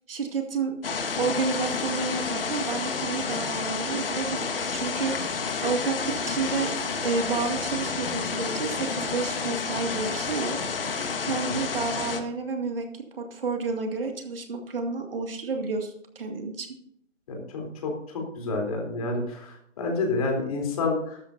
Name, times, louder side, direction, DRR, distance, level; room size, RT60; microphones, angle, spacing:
voice 1, 0.1-0.8 1.2-6.0 6.3-6.7 7.0-10.6 10.9-16.7, right 4 dB, 45° right, 3 dB, 2.2 m, -30 dB
sound 1, 0.8-12.2, left 5 dB, 45° left, 1.6 m, -30 dB
voice 2, 11.2-11.6 17.3-21.2, left 3 dB, 30° left, 1 dB, 3.6 m, -29 dB
14.5 x 13.0 x 2.7 m, 0.69 s
figure-of-eight pair, 160°, 38 cm